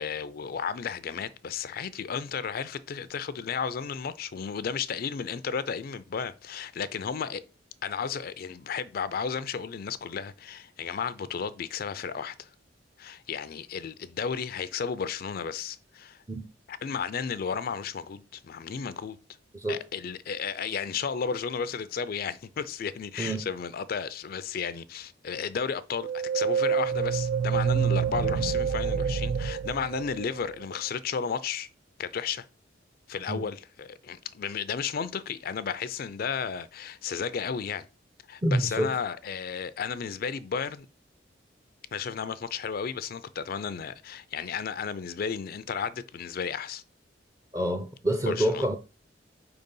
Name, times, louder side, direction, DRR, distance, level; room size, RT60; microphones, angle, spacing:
voice 1, 0.0-7.4 7.8-12.5 13.0-16.2 16.7-19.2 19.7-31.7 32.0-32.4 33.1-37.8 38.3-40.9 41.9-46.8 48.3-48.6, left 6 dB, 55° left, 0.4 m, -33 dB
voice 2, 19.5-19.9 23.2-23.4 33.3-33.5 38.4-38.9 47.5-48.7, right 1 dB, 20° right, 0.5 m, -27 dB
sound 1, 26.0-30.6, right 6 dB, 75° right, 0.4 m, -27 dB
4.7 x 3.9 x 5.3 m
head